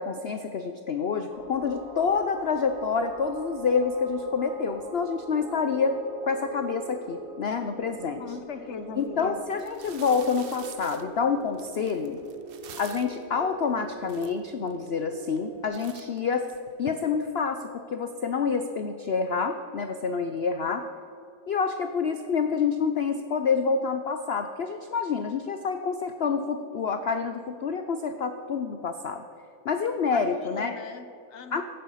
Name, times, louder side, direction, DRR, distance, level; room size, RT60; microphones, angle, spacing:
voice 1, 0.0-6.0 6.2-8.2 9.0-12.2 12.8-16.5 16.8-20.8 21.5-29.2 29.6-30.7 31.5-31.6, left 5 dB, 85° left, 7 dB, 0.5 m, -27 dB
sound 1, 1.3-15.7, right 2 dB, 60° right, 4.3 m, -44 dB
voice 2, 8.2-9.4 30.1-31.6, left 5 dB, 50° left, 9 dB, 0.9 m, -39 dB
sound 2, 8.9-9.0 9.5-13.2 13.8-13.9 14.0-14.7 15.2-15.5 15.7-16.9, right 8 dB, 85° right, 0.5 m, -47 dB
15.0 x 8.8 x 5.6 m, 2.4 s
omnidirectional pair, 1.9 m